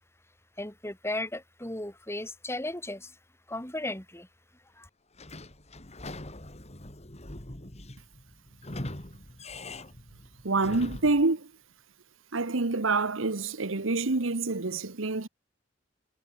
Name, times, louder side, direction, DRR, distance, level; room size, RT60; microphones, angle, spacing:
voice 1, 0.6-3.1 3.5-4.3 4.8-4.9, left 1 dB, 15° left, 5.2 m, -35 dB
Sliding door / Squeak, 5.1-11.3, left 1 dB, 30° left, 3.3 m, -42 dB
voice 2, 10.4-11.5 12.3-15.3, right 3 dB, 70° right, 1.2 m, -27 dB
head